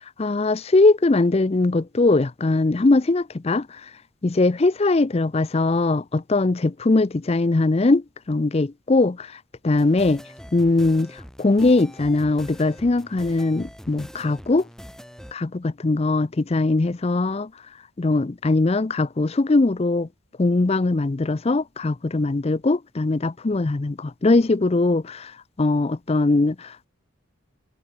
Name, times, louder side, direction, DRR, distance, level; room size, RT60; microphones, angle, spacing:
voice 1, 0.2-3.7 4.2-9.3 9.6-10.2 10.5-11.1 11.4-14.6 15.3-17.5 18.0-20.1 20.4-25.3 25.6-26.6, left 2 dB, 30° left, 0.5 m, -20 dB
sound 1, 9.7-15.3, equal, ahead, 3.6 m, -43 dB
head